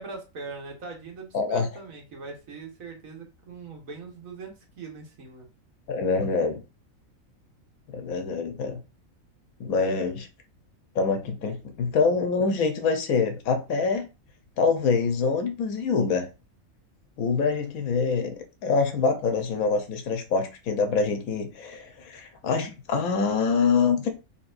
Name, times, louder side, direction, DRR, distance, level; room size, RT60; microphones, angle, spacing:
voice 1, 0.0-5.4, right 4 dB, 75° right, 1.6 m, -41 dB
voice 2, 1.3-1.7 5.9-6.6 7.9-8.8 9.6-10.3 10.9-14.1 14.6-16.3 17.2-18.3 18.6-24.1, left 4 dB, 80° left, 1.3 m, -25 dB
4.3 x 3.5 x 2.5 m
omnidirectional pair, 1.5 m